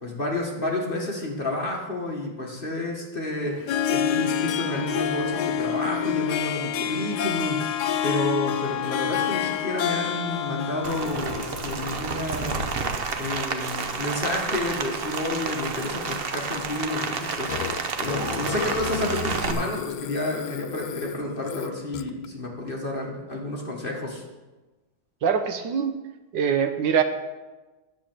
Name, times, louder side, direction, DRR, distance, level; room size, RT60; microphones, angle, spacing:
voice 1, 0.0-24.2, left 1 dB, 30° left, -1 dB, 1.8 m, -30 dB
Harp, 3.5-12.2, left 8 dB, 65° left, 1.2 m, -27 dB
Rain, 10.8-19.5, right 4 dB, 50° right, 0.7 m, -30 dB
Burping eructation, 17.5-22.3, left 12 dB, 85° left, 1.3 m, -34 dB
voice 2, 25.2-26.0 26.3-27.0, right 7 dB, 70° right, 8 dB, 1.4 m, -23 dB
10.0 x 7.1 x 7.6 m, 1.2 s
omnidirectional pair, 2.1 m